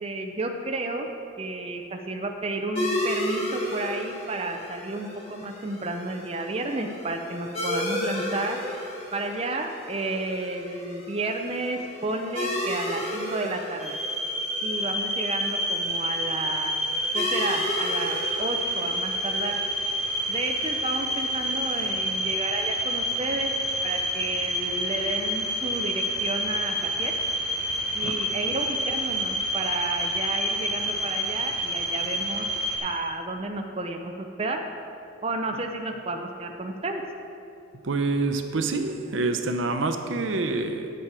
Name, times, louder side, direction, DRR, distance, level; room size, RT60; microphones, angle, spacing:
voice 1, 0.0-1.1 1.4-8.6 9.1-14.0 14.6-16.8 17.1-19.6 20.3-23.5 23.8-27.1 27.9-32.5 32.8-34.1 34.4-34.6 35.2-37.1, right 2 dB, 30° right, 3 dB, 0.5 m, -32 dB
sound 1, 2.7-21.9, left 1 dB, 30° left, 1.6 m, -34 dB
sound 2, 13.8-32.8, equal, ahead, 1.8 m, -28 dB
voice 2, 37.8-40.9, right 3 dB, 70° right, 7 dB, 0.6 m, -27 dB
10.0 x 7.3 x 4.8 m, 2.7 s
head